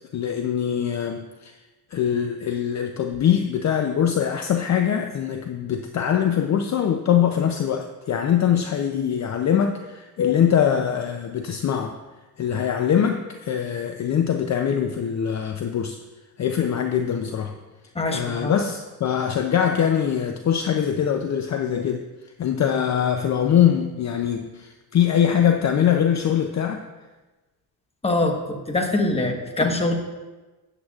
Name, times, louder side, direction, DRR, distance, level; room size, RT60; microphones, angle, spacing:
voice 1, 0.1-1.6 1.9-12.0 12.4-16.0 16.4-17.6 18.1-22.1 22.4-26.9, left 9 dB, 45° left, 6 dB, 0.6 m, -22 dB
voice 2, 17.9-18.6 28.0-30.0, left 2 dB, 15° left, 3 dB, 1.1 m, -23 dB
13.0 x 9.1 x 2.4 m, 1.2 s
cardioid pair, 120°, 40 cm